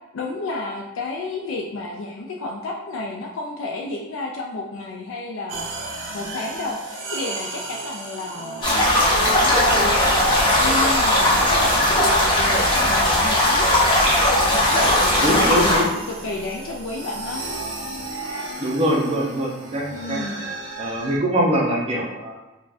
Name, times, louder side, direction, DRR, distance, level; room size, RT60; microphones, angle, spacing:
voice 1, 0.1-13.7 14.5-15.7 16.1-17.4 19.9-20.5, left 2 dB, 80° left, 0 dB, 0.4 m, -31 dB
sound 1, 5.5-21.2, right 2 dB, 75° right, 0.6 m, -33 dB
sound 2, 8.6-15.8, left 1 dB, 25° left, 0.6 m, -18 dB
voice 2, 15.2-15.9 18.6-20.2 20.8-22.3, equal, 30° right, -3 dB, 0.5 m, -23 dB
2.5 x 2.2 x 3.3 m, 1.1 s
head